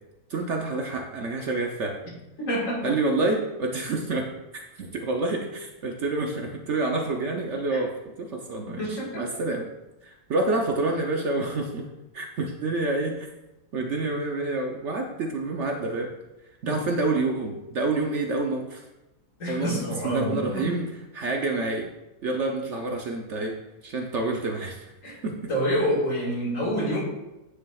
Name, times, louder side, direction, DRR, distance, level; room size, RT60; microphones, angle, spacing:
voice 1, 0.3-2.0 2.8-4.3 4.8-7.9 8.2-9.7 10.0-11.8 12.1-13.3 13.7-16.1 16.6-18.9 19.5-19.7 20.0-20.9 21.1-21.9 22.2-23.5 23.8-24.9 25.2-25.4, right 2 dB, 60° right, 1 dB, 0.9 m, -28 dB
voice 2, 2.4-3.0 7.7-7.8 8.7-9.3 16.6-16.8 19.4-20.7 25.0-25.2 25.5-27.0, equal, 60° left, -3 dB, 2.1 m, -27 dB
9.6 x 6.2 x 2.3 m, 0.98 s
omnidirectional pair, 1.6 m